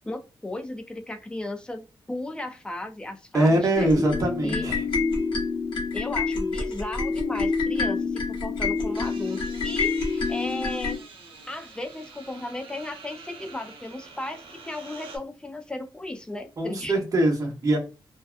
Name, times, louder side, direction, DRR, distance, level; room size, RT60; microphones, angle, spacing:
voice 1, 0.0-3.9 4.4-4.7 5.9-11.0 11.5-16.9, left 2 dB, 10° left, 6 dB, 0.4 m, -35 dB
voice 2, 3.3-4.8 16.6-17.8, right 1 dB, 40° right, 0 dB, 0.9 m, -22 dB
sound 1, 3.7-11.0, left 4 dB, 75° left, 1.0 m, -27 dB
sound 2, 8.9-15.2, right 4 dB, 90° right, 0.7 m, -46 dB
2.7 x 2.2 x 2.3 m, 0.32 s
wide cardioid pair, 145°, 9 cm